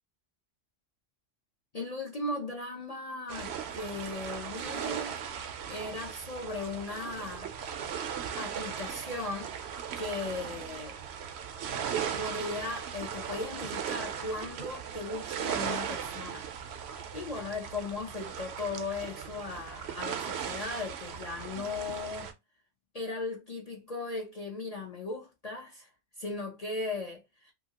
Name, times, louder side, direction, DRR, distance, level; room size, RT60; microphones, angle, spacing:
voice 1, 1.7-5.2 5.7-7.5 8.4-9.5 10.0-11.0 12.2-16.5 17.1-22.3 22.9-25.9 26.2-27.5, left 3 dB, 45° left, 0.6 m, -37 dB
sound 1, 3.3-22.3, right 8 dB, 65° right, 0.7 m, -38 dB
2.8 x 2.7 x 2.8 m
omnidirectional pair, 1.3 m